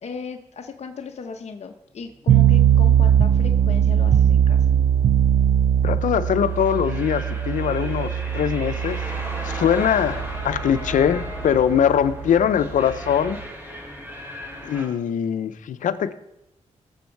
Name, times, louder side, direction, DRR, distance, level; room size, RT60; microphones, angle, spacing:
voice 1, 0.0-4.7, left 5 dB, 60° left, 4 dB, 1.0 m, -36 dB
sound 1, 1.8-7.6, left 2 dB, ahead, 5.6 m, -47 dB
sound 2, 2.3-13.4, right 9 dB, 70° right, 0.5 m, -20 dB
voice 2, 5.8-9.0 9.4-13.4 14.6-16.1, left 8 dB, 90° left, 12 dB, 0.7 m, -22 dB
sound 3, 6.3-14.9, equal, 15° right, 5.5 m, -35 dB
19.5 x 7.3 x 4.7 m, 0.86 s
cardioid pair, 70°, 13 cm